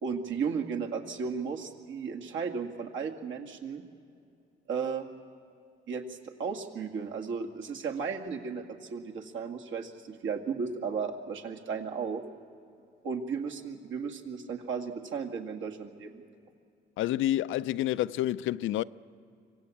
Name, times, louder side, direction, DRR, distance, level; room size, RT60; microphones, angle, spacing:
voice 1, 0.0-3.8 4.7-5.1 5.9-12.2 13.0-16.2, right 5 dB, 75° right, 2.2 m, -35 dB
voice 2, 17.0-18.8, left 13 dB, 80° left, 0.5 m, -28 dB
25.0 x 17.5 x 8.5 m
cardioid pair, 90°, 20 cm